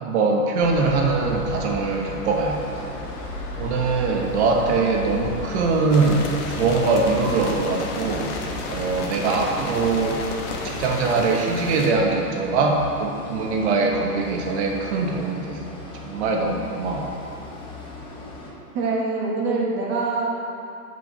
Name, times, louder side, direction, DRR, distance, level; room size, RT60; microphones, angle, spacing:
voice 1, 0.0-2.9 3.6-8.3 8.7-10.2 10.6-17.1, right 3 dB, 45° right, 1 dB, 1.1 m, -22 dB
sound 1, 0.6-10.9, left 1 dB, 80° left, 1.5 m, -35 dB
sound 2, 2.5-18.5, left 2 dB, 10° left, 0.6 m, -39 dB
sound 3, 5.9-11.9, left 3 dB, 45° left, 1.0 m, -33 dB
voice 2, 18.7-20.3, right 3 dB, 25° right, -2 dB, 1.1 m, -24 dB
6.1 x 5.0 x 5.9 m, 2.7 s
hypercardioid pair, 135°, 48 cm